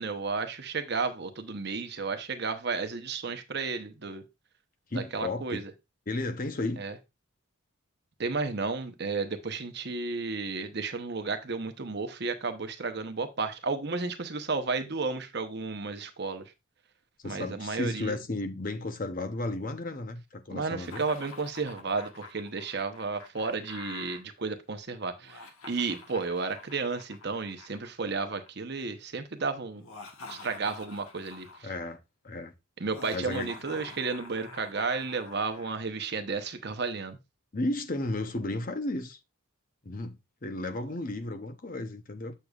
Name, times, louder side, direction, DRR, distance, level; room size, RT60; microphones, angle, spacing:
voice 1, 0.0-4.2 4.9-5.7 6.8-6.9 8.2-16.5 17.2-18.2 20.5-29.8 30.3-31.7 32.8-37.2, right 4 dB, 50° right, 0.8 m, -33 dB
voice 2, 4.9-5.6 6.1-6.8 17.2-21.0 31.6-32.0 32.2-32.5 33.1-33.5 37.5-39.2 39.8-42.3, left 2 dB, 40° left, 0.7 m, -33 dB
Laughter, 20.8-24.2 25.2-28.5 29.7-31.7 32.8-35.8, left 3 dB, 75° left, 1.2 m, -47 dB
7.5 x 6.7 x 2.4 m
head